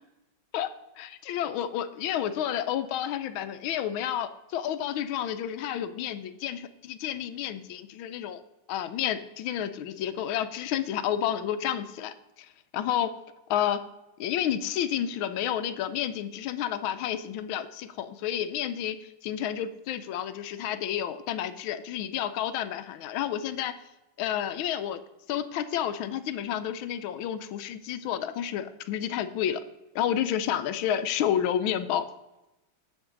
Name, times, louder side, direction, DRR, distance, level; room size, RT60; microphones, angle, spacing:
voice 1, 0.5-8.4 8.7-13.2 13.5-13.8 14.2-23.7 24.2-25.0 25.3-29.6 29.9-32.1, left 10 dB, 85° left, 11 dB, 1.4 m, -30 dB
8.7 x 7.5 x 3.9 m, 0.98 s
omnidirectional pair, 2.2 m